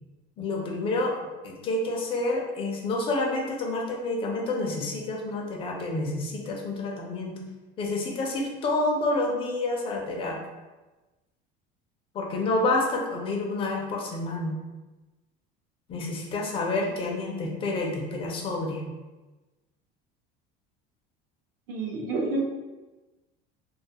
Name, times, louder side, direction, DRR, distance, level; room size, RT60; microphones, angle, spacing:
voice 1, 0.4-1.2 1.4-7.4 7.8-10.4 12.1-14.6 15.9-18.9, left 2 dB, 25° left, 0 dB, 0.4 m, -28 dB
voice 2, 21.7-22.4, right 3 dB, 75° right, -1 dB, 0.7 m, -28 dB
2.4 x 2.3 x 2.7 m, 1.2 s
cardioid pair, 170°, 20 cm